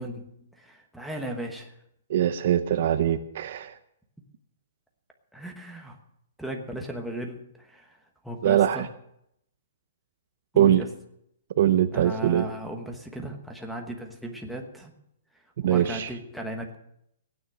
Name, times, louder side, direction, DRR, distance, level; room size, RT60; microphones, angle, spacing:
voice 1, 0.0-1.7 5.3-6.0 6.4-8.0 8.2-8.9 10.5-10.9 11.9-14.9 15.7-16.8, equal, ahead, 3 dB, 1.1 m, -36 dB
voice 2, 2.1-3.7 8.4-8.9 10.6-10.8 11.6-12.5 15.6-16.1, right 11 dB, 40° right, 11 dB, 0.6 m, -22 dB
16.5 x 9.5 x 6.4 m, 0.75 s
hypercardioid pair, 180°, 0 cm